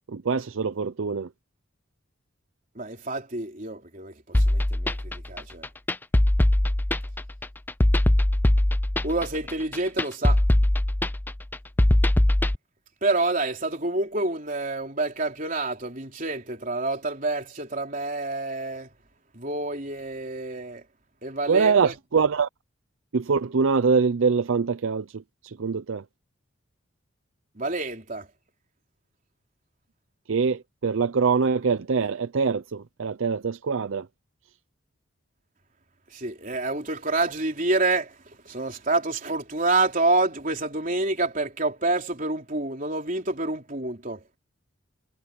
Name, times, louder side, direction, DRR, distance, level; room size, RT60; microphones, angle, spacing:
voice 1, 0.1-1.3 21.5-22.5 23.1-26.0 30.3-34.1, right 5 dB, 70° right, 0.5 m, -24 dB
voice 2, 2.8-5.7 9.0-10.4 13.0-18.9 19.3-20.8 21.2-21.9 27.6-28.3 36.1-44.2, right 2 dB, 40° right, 3.8 m, -28 dB
sound 1, 4.3-12.6, left 1 dB, 10° left, 0.4 m, -21 dB
head